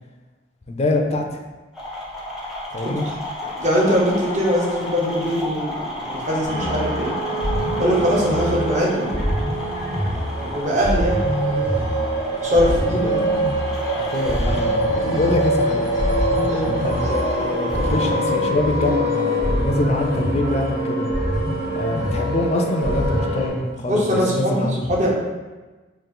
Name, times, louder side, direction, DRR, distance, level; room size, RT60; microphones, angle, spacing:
voice 1, 0.7-1.4 2.7-3.1 14.0-15.8 16.7-21.1 21.7-24.9, left 2 dB, 35° left, 3 dB, 0.4 m, -24 dB
sound 1, 1.7-18.2, left 1 dB, ahead, 0.7 m, -33 dB
voice 2, 3.6-7.1 7.8-9.2 9.9-11.7 12.4-13.2 16.5-16.7 23.9-25.1, equal, 40° right, -4 dB, 0.9 m, -22 dB
sound 2, 6.4-23.5, right 1 dB, 80° right, 1.3 m, -23 dB
3.7 x 2.4 x 3.8 m, 1.2 s
head